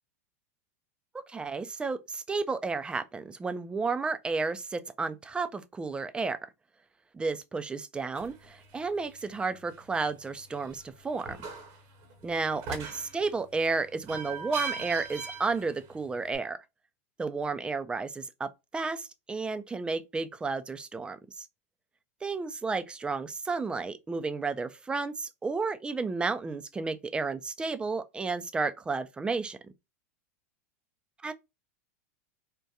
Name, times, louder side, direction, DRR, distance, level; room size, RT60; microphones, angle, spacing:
voice 1, 1.1-6.4 7.1-11.5 12.2-16.6 17.2-21.5 22.2-29.6 31.2-31.3, right 4 dB, 10° right, 0.3 m, -32 dB
sound 1, 8.1-16.4, right 5 dB, 50° right, 0.9 m, -42 dB
3.5 x 2.1 x 2.7 m
hypercardioid pair, 115°, 8 cm